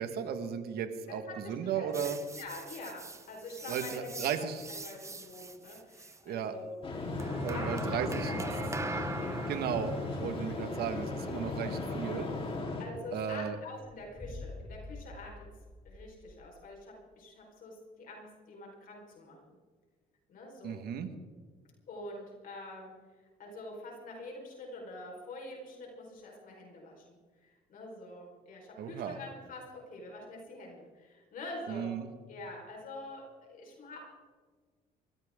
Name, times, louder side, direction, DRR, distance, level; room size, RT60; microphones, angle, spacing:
voice 1, 0.0-2.2 3.7-4.6 6.2-6.5 7.4-8.3 9.5-9.9 10.2-12.3 13.1-13.6 20.6-21.1 28.8-29.2 31.7-32.1, right 8 dB, 70° right, 8 dB, 1.7 m, -35 dB
voice 2, 1.1-1.9 2.3-6.8 7.4-9.6 10.7-10.9 12.8-15.5 15.8-19.6 20.3-20.8 21.9-22.9 23.4-32.0 32.3-34.1, left 2 dB, 55° left, 0 dB, 4.8 m, -46 dB
sound 1, 1.9-6.2 7.2-12.6, right 3 dB, 15° right, 1.1 m, -42 dB
sound 2, 6.8-12.9, left 3 dB, 35° left, 3.9 m, -36 dB
sound 3, 13.8-16.6, left 2 dB, 5° left, 2.7 m, -47 dB
22.0 x 15.0 x 3.8 m, 1.5 s
cardioid pair, 110°, 17 cm